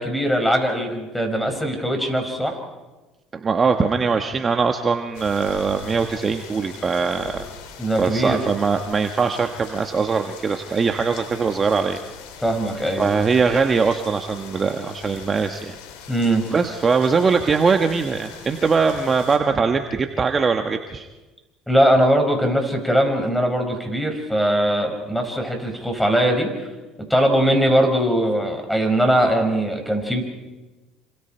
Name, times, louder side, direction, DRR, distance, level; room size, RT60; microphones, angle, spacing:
voice 1, 0.0-2.6 7.8-8.4 12.4-13.1 16.1-16.5 21.7-26.7 27.1-30.2, equal, 5° left, 4 dB, 5.7 m, -20 dB
voice 2, 3.3-7.4 8.0-12.0 13.0-15.8 16.5-21.1, right 5 dB, 30° right, 5 dB, 1.5 m, -21 dB
sound 1, 5.1-19.4, left 7 dB, 85° left, 4.3 m, -42 dB
28.0 x 26.5 x 4.6 m, 1.1 s
supercardioid pair, 95°, 0 cm